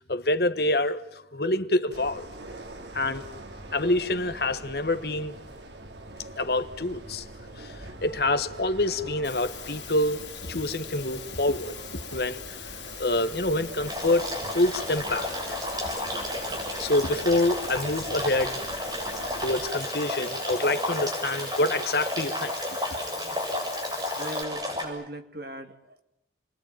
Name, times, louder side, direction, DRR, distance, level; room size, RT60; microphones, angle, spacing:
voice 1, 0.0-2.3 2.9-3.2 3.7-5.4 6.4-7.2 7.6-11.7 12.1-12.4 13.0-14.3 14.5-15.6 16.8-18.6 19.4-22.5, left 2 dB, 55° left, 1.4 m, -26 dB
sound 1, 1.9-19.7, right 2 dB, 75° right, 2.7 m, -43 dB
Water, 9.2-24.4, left 10 dB, 80° left, 2.8 m, -42 dB
sound 2, 13.9-24.8, left 1 dB, 20° right, 7.4 m, -32 dB
voice 2, 24.1-26.0, right 1 dB, 55° right, 2.3 m, -39 dB
29.5 x 22.0 x 9.1 m
head